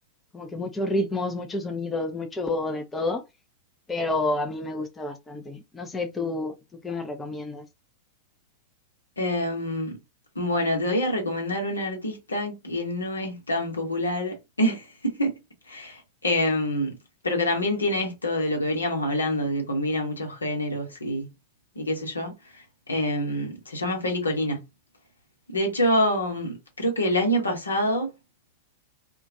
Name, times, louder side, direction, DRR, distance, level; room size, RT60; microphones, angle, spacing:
voice 1, 0.3-3.2 3.9-6.5 6.8-7.6, left 2 dB, 15° left, 0.4 m, -29 dB
voice 2, 9.2-9.9 10.4-15.3 15.7-16.9 17.2-21.3 21.8-22.3 22.9-24.6 25.5-28.1, left 1 dB, 75° left, 0.9 m, -26 dB
2.2 x 2.2 x 2.6 m
figure-of-eight pair, 90°, 0 cm